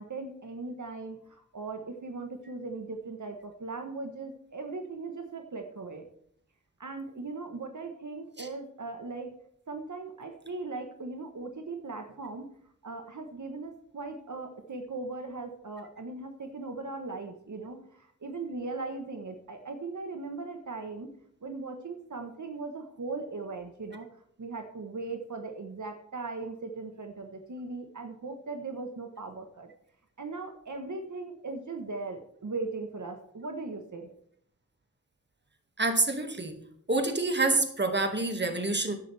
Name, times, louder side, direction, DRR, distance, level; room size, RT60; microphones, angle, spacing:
voice 1, 0.0-6.1 6.8-9.3 9.7-12.5 12.8-21.1 21.4-24.1 24.4-29.7 30.2-34.1, right 3 dB, 70° right, 4 dB, 1.2 m, -39 dB
voice 2, 35.8-36.6 36.9-38.9, right 2 dB, 35° right, 5 dB, 1.8 m, -27 dB
13.5 x 10.5 x 3.4 m, 0.67 s
wide cardioid pair, 65°, 31 cm